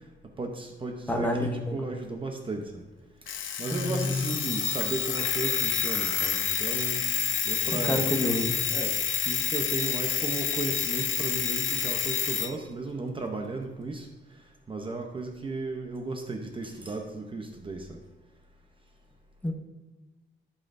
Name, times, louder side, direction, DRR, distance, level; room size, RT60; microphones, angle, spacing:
voice 1, 0.4-2.8 3.6-7.0 7.4-8.1 8.7-9.0 9.2-14.1 14.7-18.0, right 3 dB, 25° right, 3 dB, 0.7 m, -35 dB
voice 2, 1.1-1.9 3.7-4.2 7.7-8.5 19.4-19.5, left 1 dB, 10° left, 1 dB, 0.9 m, -28 dB
Alarm, 3.3-12.5, left 8 dB, 75° left, 0.7 m, -29 dB
15.0 x 5.6 x 2.6 m, 1.2 s
wide cardioid pair, 180°, 20 cm